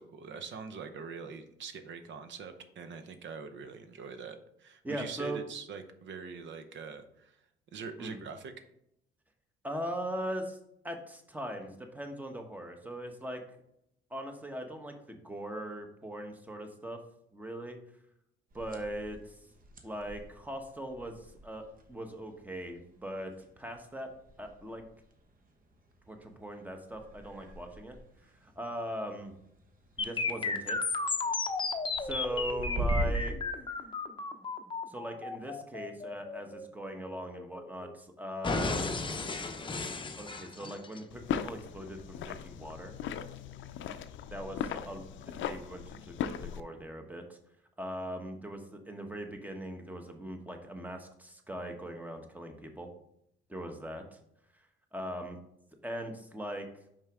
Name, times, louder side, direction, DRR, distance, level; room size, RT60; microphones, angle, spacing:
voice 1, 0.0-7.4 7.7-8.5, right 5 dB, 70° right, 9 dB, 0.8 m, -43 dB
voice 2, 4.8-5.4 8.0-8.2 9.6-10.6 10.8-13.4 14.1-17.0 17.3-17.8 18.5-19.4 19.8-24.1 24.4-24.8 26.1-28.0 28.4-29.3 30.0-31.0 32.0-33.6 34.9-38.9 40.2-42.9 44.3-47.4 47.8-52.9 53.5-54.2 54.9-55.4 55.8-56.7, equal, 10° right, 5 dB, 1.1 m, -40 dB
sound 1, 18.5-33.3, right 1 dB, 45° right, 1.1 m, -42 dB
sound 2, 30.0-37.9 38.4-41.0, left 3 dB, 25° left, 0.6 m, -34 dB
sound 3, 41.1-46.6, left 8 dB, 75° left, 0.5 m, -38 dB
5.5 x 5.1 x 3.5 m, 0.76 s
cardioid pair, 90°, 20 cm